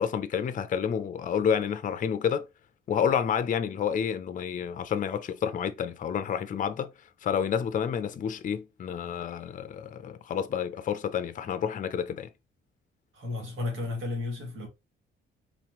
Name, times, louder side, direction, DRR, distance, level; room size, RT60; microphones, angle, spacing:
voice 1, 0.0-2.5 2.9-6.9 7.2-12.3, left 8 dB, 40° left, 0.5 m, -29 dB
voice 2, 13.1-14.7, left 3 dB, 75° right, 2.0 m, -34 dB
4.2 x 2.9 x 2.9 m
cardioid pair, 90°, 20 cm